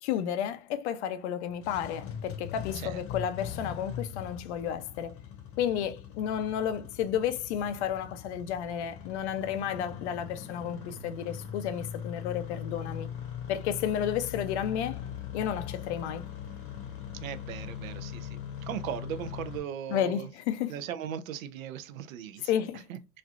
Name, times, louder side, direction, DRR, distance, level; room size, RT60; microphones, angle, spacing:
voice 1, 0.0-5.2 5.6-13.1 13.5-15.0 15.3-16.3 19.9-20.8 22.5-22.9, left 9 dB, 50° left, 0.5 m, -32 dB
Engine starting, 1.5-19.6, left 9 dB, 30° left, 0.9 m, -41 dB
voice 2, 17.2-20.3 20.7-22.5 22.9-23.2, right 9 dB, 65° right, 0.6 m, -38 dB
3.1 x 2.4 x 2.4 m
hypercardioid pair, 115°, 44 cm